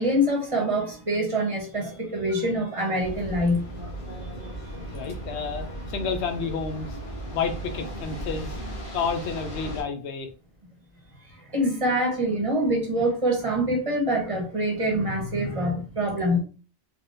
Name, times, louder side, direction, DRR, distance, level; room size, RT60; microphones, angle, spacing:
voice 1, 0.0-3.6 4.4-4.6 11.5-16.4, equal, 35° right, 0 dB, 0.8 m, -25 dB
sound 1, 3.0-9.8, right 1 dB, 55° left, 1.1 m, -36 dB
voice 2, 4.9-7.0 7.3-8.6 8.9-10.3, left 5 dB, 90° left, 6 dB, 0.9 m, -30 dB
3.7 x 2.2 x 2.5 m, 0.36 s
omnidirectional pair, 1.1 m